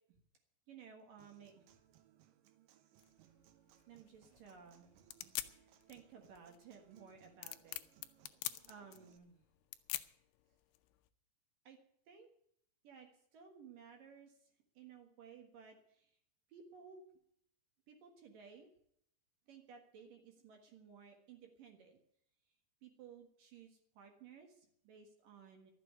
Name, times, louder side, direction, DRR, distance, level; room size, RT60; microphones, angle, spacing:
voice 1, 0.7-1.7 3.9-5.0 5.4-7.8 8.6-9.4 11.6-11.8 12.1-12.3 12.8-16.2 16.5-17.0 17.9-18.7 19.5-22.0 22.8-25.7, right 6 dB, 60° right, 3 dB, 2.9 m, -57 dB
Human voice / Acoustic guitar, 1.2-9.2, right 12 dB, 75° right, 2.0 m, -68 dB
sound 1, 3.0-11.1, left 16 dB, 80° left, 2.6 m, -47 dB
13.0 x 7.9 x 9.6 m, 0.69 s
omnidirectional pair, 5.1 m